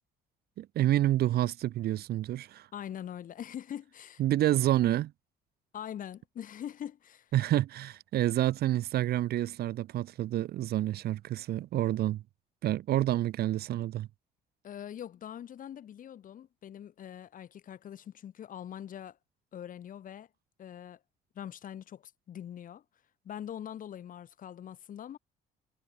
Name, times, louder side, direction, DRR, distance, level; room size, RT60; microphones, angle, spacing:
voice 1, 0.6-2.7 4.2-5.1 7.3-12.2 12.6-14.1, right 13 dB, 70° right, 2.5 m, -28 dB
voice 2, 2.7-4.2 5.7-7.3 14.6-19.2 19.5-20.3 20.6-21.0 21.4-22.8 23.2-25.2, left 10 dB, 55° left, 3.9 m, -43 dB
cardioid pair, 110°, 17 cm